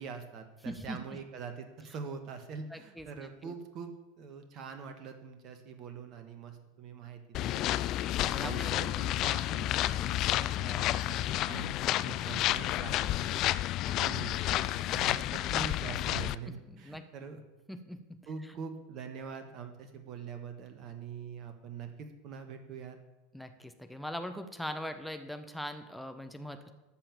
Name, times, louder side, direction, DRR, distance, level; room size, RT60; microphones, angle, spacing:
voice 1, 0.0-7.6 8.2-13.4 13.9-17.4 18.3-23.0, right 6 dB, 45° right, 7 dB, 1.3 m, -44 dB
voice 2, 0.6-1.0 2.7-3.5 8.3-8.9 16.7-17.0 17.7-18.2 23.3-26.7, equal, ahead, 7 dB, 1.2 m, -41 dB
sound 1, 7.3-16.4, left 14 dB, 45° left, 0.4 m, -30 dB
13.5 x 5.7 x 7.2 m, 1.1 s
figure-of-eight pair, 80°, 0 cm